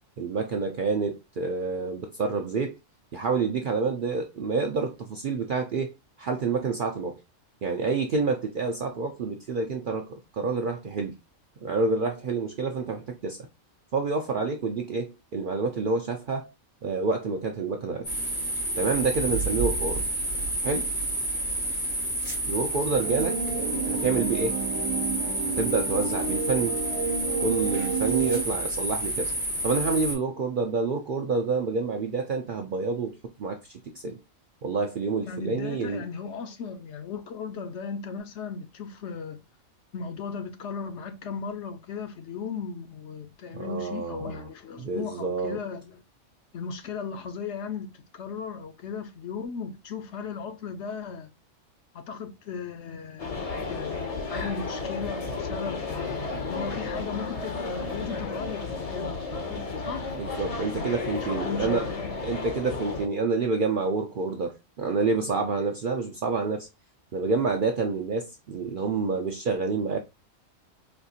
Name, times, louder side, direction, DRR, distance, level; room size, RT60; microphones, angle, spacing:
voice 1, 0.2-2.8 3.1-5.9 6.2-7.2 7.6-11.1 11.6-13.4 13.9-16.5 16.8-18.1 18.8-20.1 20.6-20.9 22.5-23.4 23.9-24.6 25.6-26.8 27.4-29.3 29.6-34.2 34.6-36.1 43.5-44.5 44.8-45.6 60.2-61.9 62.2-66.7 67.1-70.0, right 4 dB, 60° right, 0.5 m, -28 dB
sound 1, 18.0-30.1, right 1 dB, 85° left, 2.3 m, -30 dB
sound 2, 23.0-28.4, right 5 dB, 85° right, 1.0 m, -30 dB
voice 2, 35.2-39.4 39.9-46.0 46.5-51.3 51.9-55.8 56.5-60.1 60.5-62.2, left 5 dB, 65° left, 0.8 m, -37 dB
sound 3, 53.2-63.1, left 4 dB, 40° left, 0.6 m, -33 dB
4.2 x 2.4 x 2.7 m
omnidirectional pair, 1.3 m